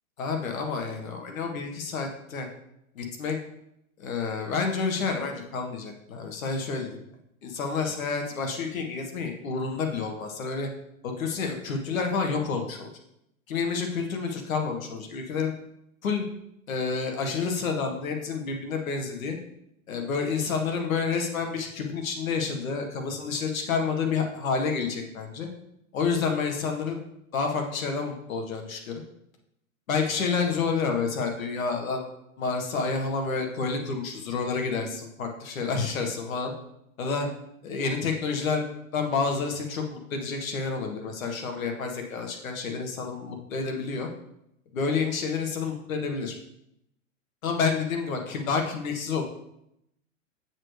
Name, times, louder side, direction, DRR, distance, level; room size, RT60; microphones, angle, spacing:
voice 1, 0.2-2.5 2.9-3.4 4.0-7.0 7.4-10.7 11.0-12.9 13.5-15.5 16.0-16.2 16.7-19.4 19.9-25.5 25.9-27.0 27.3-29.0 29.9-32.0 32.4-36.5 37.0-37.3 37.6-38.6 38.9-44.1 44.7-46.3 47.4-49.2, left 5 dB, 75° left, 3 dB, 1.6 m, -29 dB
7.4 x 6.5 x 3.3 m, 0.79 s
hypercardioid pair, 130°, 41 cm